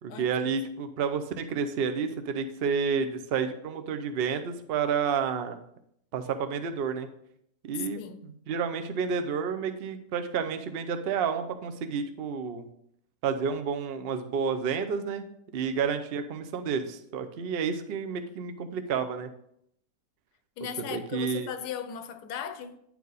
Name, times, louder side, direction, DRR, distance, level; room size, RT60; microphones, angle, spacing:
voice 1, 0.0-5.6 6.1-7.1 7.6-12.7 13.2-15.3 15.5-19.3 20.9-21.5, right 6 dB, 60° right, 0.6 m, -30 dB
voice 2, 7.7-8.2 15.6-15.7 20.6-22.8, left 8 dB, 75° left, 1.1 m, -37 dB
9.6 x 4.7 x 4.0 m
omnidirectional pair, 1.8 m